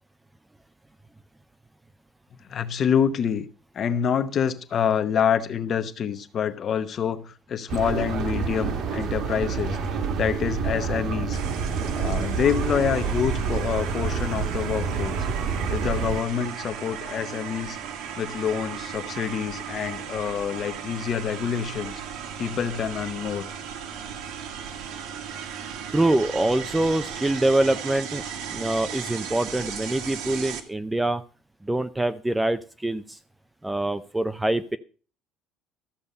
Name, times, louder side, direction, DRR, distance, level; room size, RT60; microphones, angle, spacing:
voice 1, 2.5-3.4 3.7-9.8 10.2-11.4 12.0-15.3 15.7-17.8 18.2-21.9 22.4-23.5, left 8 dB, 35° left, 0.9 m, -26 dB
sound 1, 7.7-16.2, right 6 dB, 50° right, 1.4 m, -28 dB
sound 2, 11.3-30.6, right 7 dB, 70° right, 1.7 m, -36 dB
voice 2, 25.9-28.2 28.5-31.2 31.6-33.2 33.6-34.8, right 1 dB, 5° right, 0.4 m, -24 dB
13.0 x 7.0 x 5.3 m
cardioid pair, 160°, 0 cm